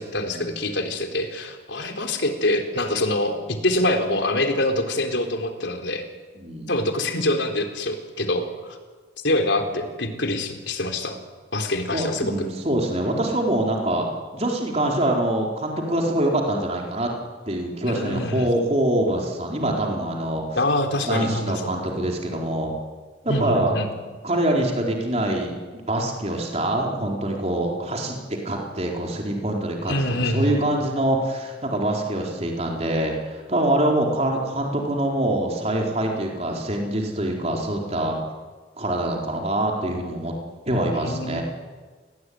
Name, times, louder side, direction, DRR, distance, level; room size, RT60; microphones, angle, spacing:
voice 1, 0.0-6.0 6.7-8.8 9.2-11.2 11.5-12.3 17.9-18.5 20.5-21.7 23.3-23.9 29.9-30.6 40.7-41.4, left 1 dB, 75° left, 4 dB, 4.0 m, -25 dB
voice 2, 6.4-6.7 11.9-14.1 14.3-17.1 17.5-20.4 21.1-22.7 23.2-23.7 24.2-28.2 28.4-29.9 30.2-38.2 38.8-40.3 40.7-41.4, right 1 dB, 35° right, 0 dB, 4.3 m, -24 dB
30.0 x 20.0 x 9.7 m, 1.4 s
head